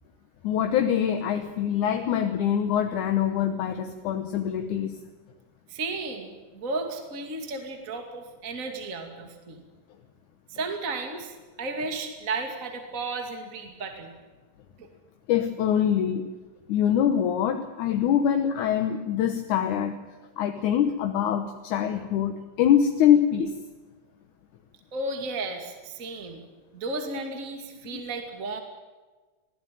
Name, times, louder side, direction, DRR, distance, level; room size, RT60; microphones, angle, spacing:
voice 1, 0.4-5.0 15.3-16.3 16.7-20.0 20.4-23.5 27.9-28.0, left 9 dB, 70° left, 6 dB, 2.5 m, -24 dB
voice 2, 5.7-9.6 10.5-14.1 14.8-14.9 24.9-26.4 26.7-28.6, right 3 dB, 25° right, 4 dB, 2.4 m, -34 dB
22.5 x 16.0 x 9.1 m, 1.3 s
omnidirectional pair, 3.7 m